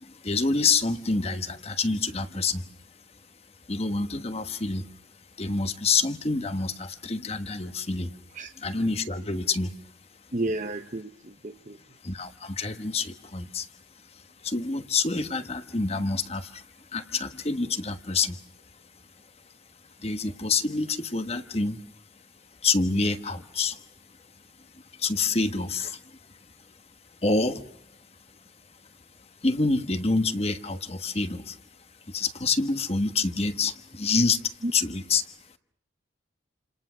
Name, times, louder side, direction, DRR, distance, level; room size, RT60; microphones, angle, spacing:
voice 1, 0.0-2.7 3.7-4.9 5.4-8.1 8.6-9.7 12.0-13.7 14.4-16.6 16.9-18.4 20.0-21.8 22.6-23.8 25.0-26.2 27.2-27.6 29.4-31.6 32.1-35.3, left 4 dB, 30° left, 9 dB, 1.3 m, -27 dB
voice 2, 10.3-11.8 34.6-34.7, right 1 dB, 40° right, 8 dB, 1.0 m, -31 dB
29.0 x 27.0 x 6.2 m, 0.71 s
head